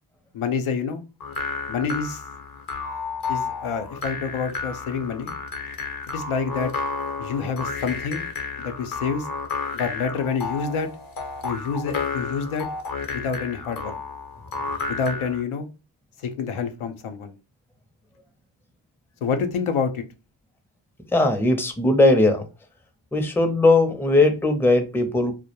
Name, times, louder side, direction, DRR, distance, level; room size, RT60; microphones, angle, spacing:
voice 1, 0.3-1.0 1.7-2.2 3.3-5.3 6.1-6.7 7.2-8.2 8.6-9.3 9.7-10.9 11.4-12.7 13.1-14.0 14.9-15.7 16.2-17.3 19.2-20.0, left 5 dB, 85° left, 0.6 m, -27 dB
sound 1, 1.2-15.4, left 4 dB, 45° left, 0.7 m, -32 dB
voice 2, 21.1-22.4 23.1-25.3, left 2 dB, 5° left, 0.5 m, -19 dB
2.2 x 2.1 x 2.8 m
cardioid pair, 65°, 49 cm